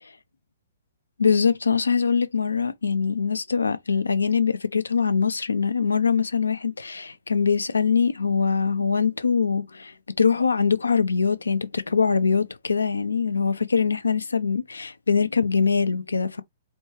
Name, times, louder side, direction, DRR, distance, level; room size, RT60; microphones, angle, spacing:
voice 1, 1.2-16.4, left 5 dB, 85° left, 0.5 m, -23 dB
4.3 x 2.3 x 3.1 m
figure-of-eight pair, 120°, 0 cm